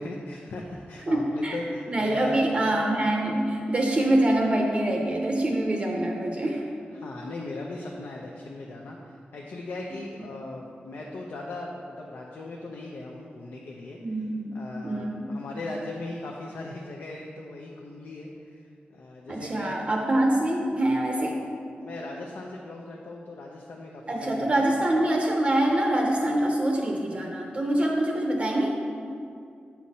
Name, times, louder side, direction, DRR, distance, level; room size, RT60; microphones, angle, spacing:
voice 1, 0.0-2.4 6.4-19.8 21.8-24.7, left 2 dB, 75° left, -1 dB, 0.6 m, -39 dB
voice 2, 1.1-1.6 1.9-6.7 14.0-14.5 14.8-15.3 19.3-21.4 24.1-28.7, right 1 dB, 35° right, 1 dB, 0.6 m, -25 dB
7.6 x 5.9 x 4.1 m, 2.4 s
wide cardioid pair, 165°, 4 cm